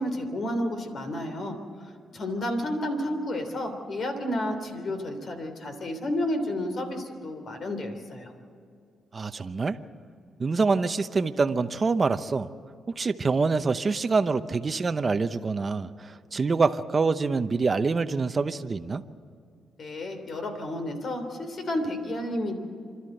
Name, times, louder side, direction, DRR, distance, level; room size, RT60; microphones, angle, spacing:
voice 1, 0.0-1.6 2.1-8.3 19.8-22.5, left 1 dB, 55° left, 6 dB, 3.3 m, -31 dB
voice 2, 9.1-9.8 10.4-12.5 13.0-19.0, right 4 dB, 35° right, 10 dB, 0.8 m, -25 dB
27.0 x 12.5 x 7.9 m, 2.3 s
cardioid pair, 95°, 0 cm